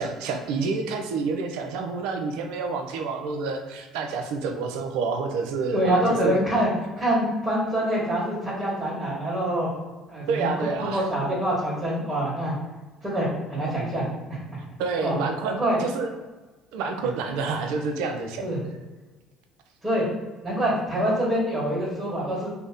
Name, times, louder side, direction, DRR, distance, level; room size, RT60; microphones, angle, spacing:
voice 1, 0.0-6.4 10.3-11.0 14.8-16.1 16.7-18.4, right 4 dB, 75° right, 5 dB, 0.4 m, -28 dB
voice 2, 5.7-6.7 7.0-9.7 10.1-12.6 13.0-14.6 15.0-15.2 15.4-15.8 18.4-18.6 19.8-20.0 20.4-22.5, right 1 dB, 20° right, -6 dB, 1.2 m, -25 dB
2.7 x 2.0 x 3.5 m, 1.2 s
hypercardioid pair, 70°, 0 cm